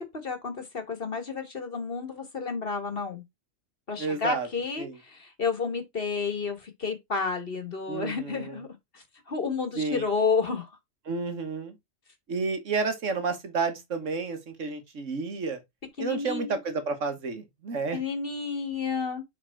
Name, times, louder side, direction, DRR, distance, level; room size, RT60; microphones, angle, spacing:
voice 1, 0.1-3.2 3.9-8.7 8.9-10.7 16.0-16.6 17.9-19.2, left 5 dB, 50° left, 1.9 m, -31 dB
voice 2, 4.0-4.5 4.8-5.0 7.9-8.6 9.8-10.0 11.1-11.8 12.3-15.6 16.0-18.0, right 4 dB, 75° right, 1.7 m, -31 dB
7.2 x 3.7 x 4.4 m
omnidirectional pair, 1.3 m